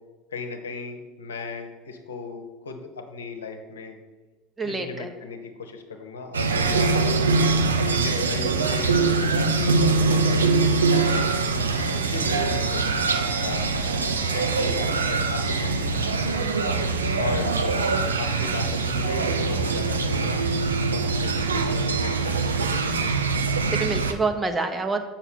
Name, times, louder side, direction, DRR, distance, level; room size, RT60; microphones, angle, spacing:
voice 1, 0.3-4.0 4.6-7.2 7.9-11.2 11.9-13.7 14.3-16.5 17.2-17.8 18.2-20.4 20.9-22.4, left 4 dB, 75° left, 4 dB, 0.9 m, -36 dB
voice 2, 4.6-5.1 6.7-7.0 23.7-25.0, right 3 dB, 20° right, 6 dB, 1.0 m, -27 dB
sound 1, 6.3-24.1, right 3 dB, 80° right, 0.6 m, -23 dB
6.8 x 5.9 x 6.1 m, 1.2 s
figure-of-eight pair, 70°, 0 cm